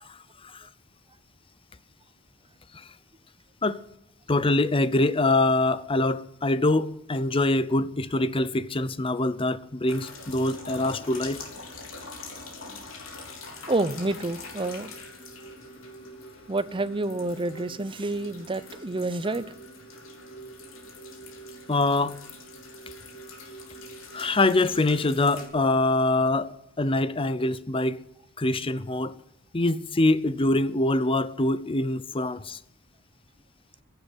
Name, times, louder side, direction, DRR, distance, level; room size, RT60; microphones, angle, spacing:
voice 1, 4.3-11.4 21.7-22.2 24.1-28.0 28.4-29.2 29.5-32.6, left 2 dB, 25° left, 0.7 m, -24 dB
sound 1, 9.9-25.5, left 2 dB, 80° left, 3.5 m, -43 dB
voice 2, 13.7-14.9 16.5-19.4, right 2 dB, 25° right, 0.7 m, -28 dB
15.5 x 8.3 x 10.0 m
head